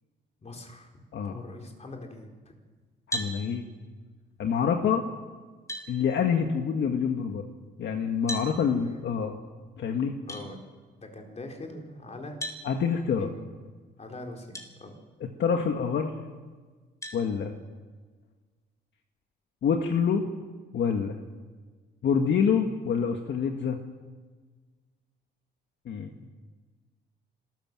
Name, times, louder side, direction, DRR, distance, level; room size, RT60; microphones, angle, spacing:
voice 1, 0.4-0.9 1.2-2.5 8.5-9.0 10.3-10.6 11.0-12.4 13.2-13.4 14.0-15.0 26.1-26.3, left 2 dB, 35° left, 2 dB, 4.4 m, -43 dB
voice 2, 3.1-3.6 4.4-5.0 5.9-7.4 7.8-9.4 9.8-10.1 12.6-13.3 15.4-16.2 17.1-17.5 19.6-20.3 20.7-21.2 22.0-23.8 25.9-26.1, left 6 dB, 65° left, 4 dB, 1.7 m, -26 dB
sound 1, 3.1-3.4 5.0-5.1 5.7-5.9 8.3-8.5 10.3-10.4 12.4-12.6 14.5-14.7 15.3-15.4 17.0-17.2, equal, 15° left, 4.3 m, -34 dB
26.5 x 14.0 x 7.6 m, 1.4 s
cardioid pair, 90°, 20 cm